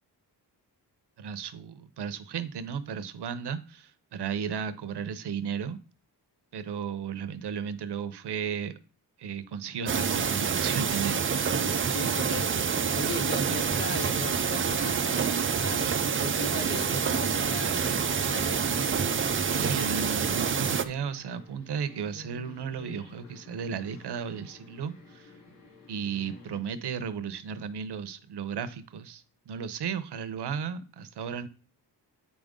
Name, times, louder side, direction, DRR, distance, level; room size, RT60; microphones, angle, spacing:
voice 1, 1.2-5.8 6.5-8.7 9.2-11.6 19.4-25.3 25.9-31.5, right 7 dB, 75° right, 13 dB, 0.9 m, -34 dB
sound 1, 9.9-20.8, right 6 dB, 30° right, 0.5 m, -27 dB
sound 2, 10.9-26.6, left 5 dB, 90° left, 4.0 m, -52 dB
voice 2, 11.6-18.6, left 4 dB, 30° left, 11 dB, 0.5 m, -39 dB
8.7 x 5.2 x 3.7 m, 0.35 s
wide cardioid pair, 145°, 40 cm